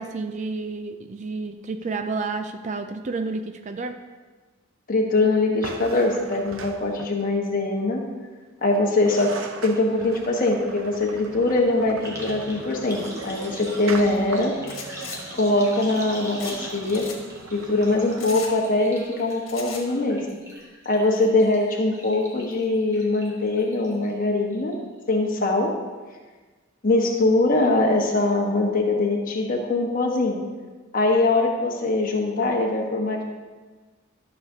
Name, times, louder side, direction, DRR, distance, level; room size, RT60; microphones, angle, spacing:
voice 1, 0.0-4.0, right 3 dB, 35° right, 8 dB, 0.4 m, -30 dB
voice 2, 4.9-8.0 8.6-9.3 9.6-14.5 15.3-17.1 17.5-20.2 20.8-24.7 25.1-25.7 26.8-30.4 30.9-33.2, left 2 dB, 40° left, 0 dB, 1.2 m, -22 dB
sound 1, 5.6-7.4 8.7-8.8 9.0-18.5, right 4 dB, 80° right, 0.7 m, -40 dB
Last water out, 9.1-9.2 9.5-24.1 24.5-25.0 25.2-25.3, equal, 15° right, 1.3 m, -42 dB
sound 2, 14.6-15.2 16.4-16.6 16.8-17.2 18.2-18.5 19.5-19.8, left 6 dB, 75° left, 1.5 m, -37 dB
13.0 x 6.6 x 2.8 m, 1.3 s
head